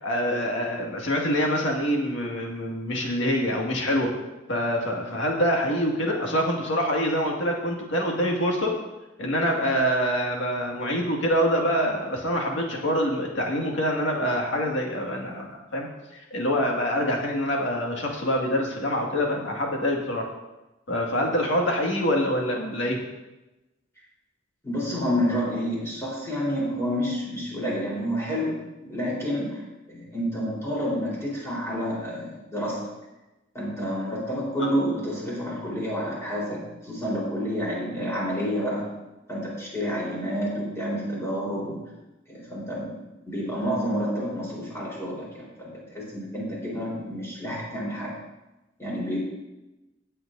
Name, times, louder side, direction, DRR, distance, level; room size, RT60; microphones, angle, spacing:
voice 1, 0.0-4.2 4.5-8.8 9.2-20.3 20.9-23.0 34.6-34.7, equal, 65° left, -1 dB, 1.9 m, -25 dB
voice 2, 24.6-29.6 29.9-32.9 33.5-38.9 39.3-41.8 42.3-43.0 43.3-48.2 48.8-49.2, equal, 15° left, -6 dB, 3.8 m, -29 dB
18.0 x 7.8 x 2.6 m, 1.0 s
head